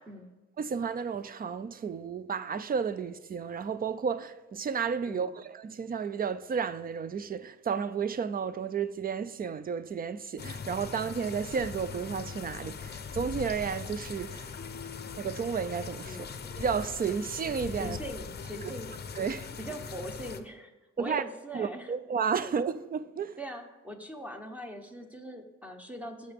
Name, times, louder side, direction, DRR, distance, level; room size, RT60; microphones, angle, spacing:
voice 1, 0.6-14.5 15.2-16.2 16.6-18.0 19.2-19.5 21.0-21.2 21.5-23.4, right 6 dB, 30° right, 0.4 m, -32 dB
voice 2, 5.1-5.4 16.0-16.3 17.7-19.0 19.6-20.7 21.0-22.0 23.4-26.3, equal, 5° right, 0.9 m, -41 dB
sound 1, 10.4-20.4, left 6 dB, 35° left, 0.6 m, -41 dB
18.0 x 6.5 x 3.5 m
wide cardioid pair, 165°, 29 cm